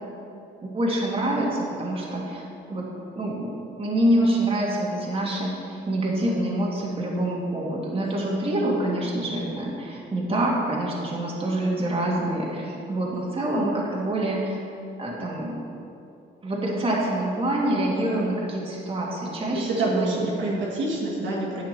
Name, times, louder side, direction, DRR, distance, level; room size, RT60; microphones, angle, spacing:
voice 1, 0.6-2.4 2.7-2.9 3.1-14.6 15.0-15.6 16.4-20.3, right 1 dB, 30° right, -4 dB, 2.0 m, -26 dB
voice 2, 19.5-21.6, right 2 dB, 70° right, -4 dB, 2.0 m, -28 dB
9.8 x 7.1 x 4.5 m, 2.7 s
cardioid pair, 90°, 20 cm